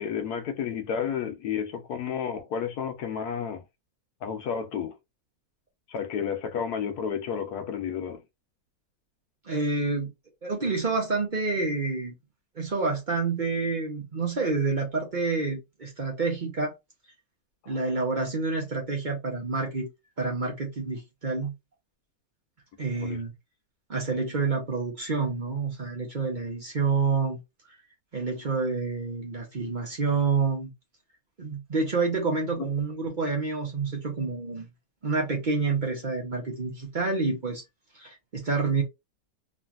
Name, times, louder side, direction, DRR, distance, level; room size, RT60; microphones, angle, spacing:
voice 1, 0.0-3.6 4.2-5.0 5.9-8.2 17.6-17.8 23.0-23.2 32.6-32.7, left 7 dB, 90° left, 1.3 m, -31 dB
voice 2, 9.4-10.1 10.4-12.1 12.5-16.7 17.7-19.9 20.2-21.5 22.8-23.3 23.9-27.4 28.1-30.7 31.4-34.7 35.0-37.6 37.9-38.8, right 4 dB, 40° right, 0.8 m, -28 dB
3.1 x 2.5 x 2.4 m
omnidirectional pair, 1.6 m